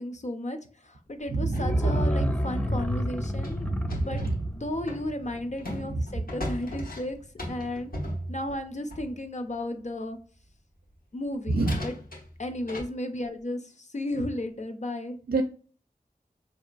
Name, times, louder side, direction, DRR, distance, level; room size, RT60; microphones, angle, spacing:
voice 1, 0.0-4.2 4.5-7.2 7.5-7.9 8.3-10.2 11.1-12.0 12.4-15.2, left 1 dB, 50° left, 6 dB, 0.6 m, -34 dB
voice 2, 1.3-2.0 3.8-4.0 11.5-11.8 15.3-15.4, right 2 dB, 85° right, 5 dB, 0.4 m, -26 dB
sound 1, 1.5-4.4 4.8-9.3 10.9-11.0 11.6-12.8, equal, 70° left, 1.0 m, -38 dB
sound 2, 1.5-6.2 6.5-6.6, equal, 10° left, 0.4 m, -31 dB
4.5 x 2.7 x 2.4 m, 0.41 s
wide cardioid pair, 45°, 15 cm